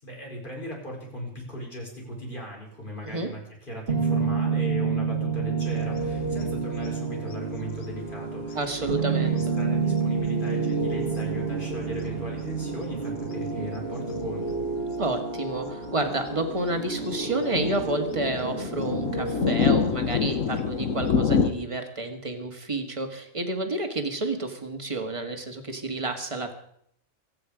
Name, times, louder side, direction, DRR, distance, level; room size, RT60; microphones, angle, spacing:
voice 1, 0.0-14.6, equal, 40° left, -1 dB, 4.9 m, -38 dB
sound 1, 3.9-19.5, right 5 dB, 50° right, 1.8 m, -29 dB
sound 2, 5.7-7.9 8.5-10.0 10.8-12.7 13.3-13.4 13.9-14.7 15.6-21.5, left 6 dB, 80° left, 1.5 m, -29 dB
voice 2, 8.6-9.4 15.0-26.5, right 2 dB, 25° right, 5 dB, 1.8 m, -30 dB
24.0 x 9.0 x 5.0 m, 0.68 s
omnidirectional pair, 1.4 m